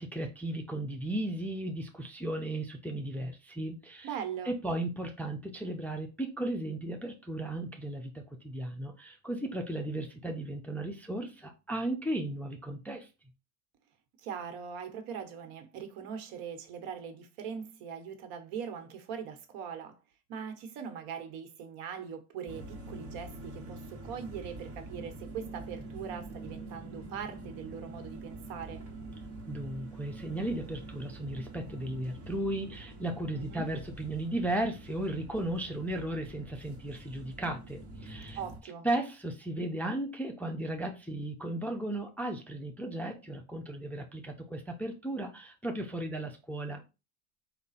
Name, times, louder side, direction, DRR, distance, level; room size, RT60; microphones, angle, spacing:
voice 1, 0.0-4.1 4.4-13.1 29.5-38.4 38.8-46.8, right 1 dB, 5° left, 0.4 m, -35 dB
voice 2, 4.0-4.5 14.2-20.0 20.3-28.8 33.3-33.7 38.4-38.9, right 7 dB, 80° right, 1.1 m, -41 dB
sound 1, 22.5-38.6, right 2 dB, 35° right, 1.2 m, -45 dB
4.8 x 2.3 x 4.0 m
cardioid pair, 120°, 50 cm